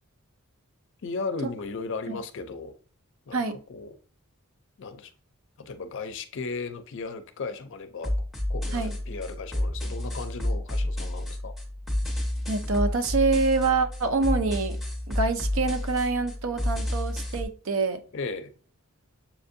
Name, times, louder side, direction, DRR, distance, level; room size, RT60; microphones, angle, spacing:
voice 1, 1.0-2.7 3.3-4.0 4.8-5.1 5.6-8.1 8.5-11.5 18.1-18.5, left 4 dB, 60° left, 0.5 m, -36 dB
sound 1, 8.0-17.4, left 1 dB, ahead, 1.2 m, -30 dB
voice 2, 12.5-14.8 15.1-18.0, right 3 dB, 70° right, 0.6 m, -26 dB
7.0 x 2.6 x 2.6 m
head